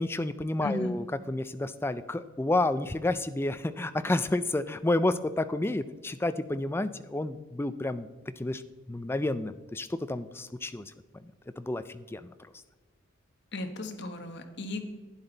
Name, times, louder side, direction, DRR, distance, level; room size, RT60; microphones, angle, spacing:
voice 1, 0.0-8.1 8.4-8.6 8.9-10.9 11.6-12.3, left 2 dB, 10° left, 12 dB, 0.3 m, -30 dB
voice 2, 0.6-0.9 13.5-14.9, left 2 dB, 55° left, 6 dB, 1.1 m, -35 dB
11.0 x 9.8 x 3.9 m, 1.3 s
head